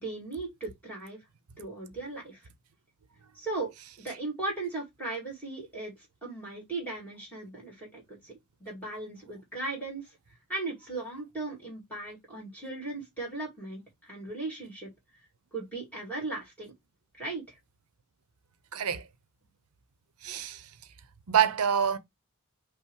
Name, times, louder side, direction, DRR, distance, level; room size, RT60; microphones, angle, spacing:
voice 1, 0.0-1.2 1.6-2.5 3.3-10.1 10.5-14.9 15.5-16.7 17.2-17.6, right 2 dB, 5° left, 2.1 m, -37 dB
voice 2, 18.7-19.1 20.2-20.7 21.3-22.0, right 8 dB, 90° right, 0.7 m, -26 dB
5.6 x 2.1 x 4.5 m
head